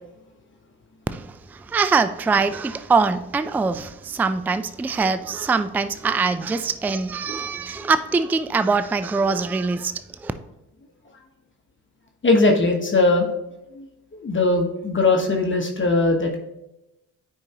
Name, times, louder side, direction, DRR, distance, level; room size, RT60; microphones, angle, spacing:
voice 1, 1.1-9.9 10.2-10.3, right 4 dB, 5° right, 0.3 m, -23 dB
voice 2, 12.2-13.3 13.7-13.9 14.1-16.4, left 2 dB, 35° left, 1.1 m, -20 dB
9.3 x 4.7 x 2.9 m
supercardioid pair, 65°, 35 cm